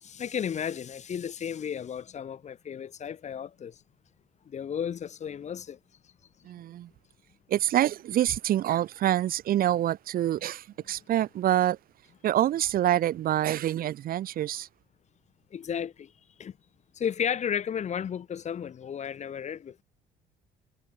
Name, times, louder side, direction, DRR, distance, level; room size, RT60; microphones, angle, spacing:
voice 1, 0.0-3.8 4.5-5.8 15.5-16.1 16.4-16.6 16.9-19.8, left 8 dB, 45° left, 2.0 m, -33 dB
voice 2, 6.4-6.9 7.5-11.8 12.2-14.7, right 12 dB, 60° right, 1.2 m, -26 dB
cardioid pair, 110°, 17 cm